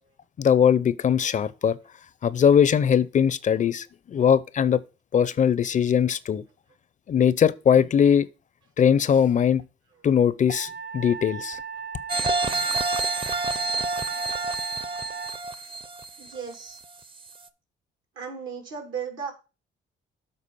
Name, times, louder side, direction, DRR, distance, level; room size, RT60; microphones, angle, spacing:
voice 1, 0.4-1.8 2.2-4.8 5.1-6.4 7.1-8.3 8.8-9.6 10.0-11.6, left 8 dB, 40° left, 0.4 m, -20 dB
Wind instrument woodwind instrument, 10.5-15.4, right 6 dB, 65° right, 0.8 m, -36 dB
sound 1, 12.1-16.8 17.3-17.4, right 2 dB, 25° right, 0.5 m, -28 dB
voice 2, 16.2-16.8 18.1-19.3, right 6 dB, 85° right, 2.2 m, -36 dB
7.4 x 4.0 x 5.5 m
cardioid pair, 90°, 20 cm